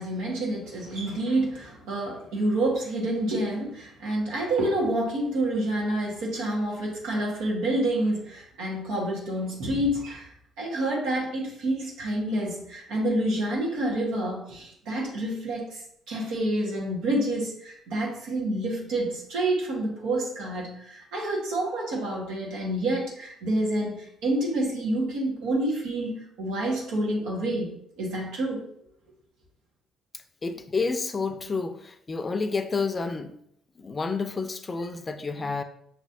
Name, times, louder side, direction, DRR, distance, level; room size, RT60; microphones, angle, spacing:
voice 1, 0.0-10.3 10.6-28.6, right 1 dB, 80° right, -3 dB, 1.5 m, -28 dB
voice 2, 30.4-33.3 33.8-35.6, left 4 dB, 35° left, 9 dB, 0.5 m, -29 dB
6.2 x 3.0 x 2.7 m, 0.69 s
supercardioid pair, 60°, 0 cm